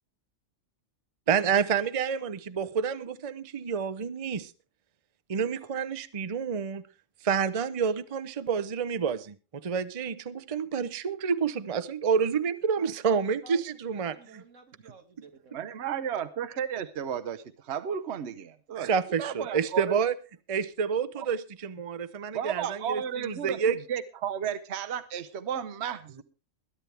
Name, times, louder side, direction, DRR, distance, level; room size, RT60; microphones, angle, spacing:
voice 1, 1.3-4.5 5.3-6.9 7.2-14.4 18.8-20.1 20.5-23.8, right 6 dB, 35° right, 13 dB, 0.7 m, -29 dB
voice 2, 12.8-15.6, right 4 dB, 85° right, 6 dB, 2.0 m, -52 dB
voice 3, 15.5-20.0 21.2-21.3 22.3-26.2, right 8 dB, 65° right, 12 dB, 1.1 m, -33 dB
21.0 x 11.0 x 3.4 m, 0.32 s
omnidirectional pair, 1.3 m